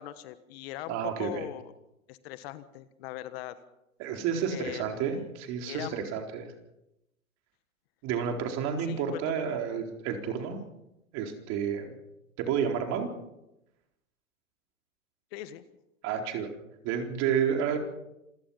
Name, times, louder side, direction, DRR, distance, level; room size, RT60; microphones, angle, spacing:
voice 1, 0.0-1.7 2.1-3.5 4.5-5.3 5.7-6.0 8.8-9.8 15.3-15.6, left 13 dB, 50° left, 13 dB, 1.5 m, -41 dB
voice 2, 0.9-1.4 4.0-6.5 8.0-10.6 11.1-11.9 12.4-13.1 16.0-16.5 16.8-17.8, right 7 dB, 40° right, 4 dB, 4.1 m, -30 dB
27.5 x 17.0 x 5.7 m, 0.87 s
hypercardioid pair, 115°, 40 cm